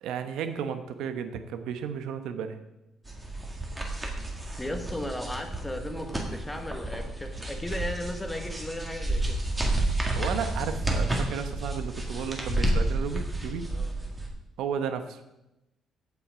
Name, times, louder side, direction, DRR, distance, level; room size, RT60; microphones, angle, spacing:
voice 1, 0.0-2.6 10.1-13.7 14.6-15.2, right 7 dB, 85° right, 9 dB, 0.9 m, -33 dB
sound 1, 3.1-14.3, right 1 dB, 15° right, 1.8 m, -30 dB
voice 2, 4.6-9.4 13.7-13.9, left 1 dB, 10° left, 5 dB, 1.2 m, -36 dB
15.5 x 6.0 x 5.1 m, 0.93 s
cardioid pair, 140°, 0 cm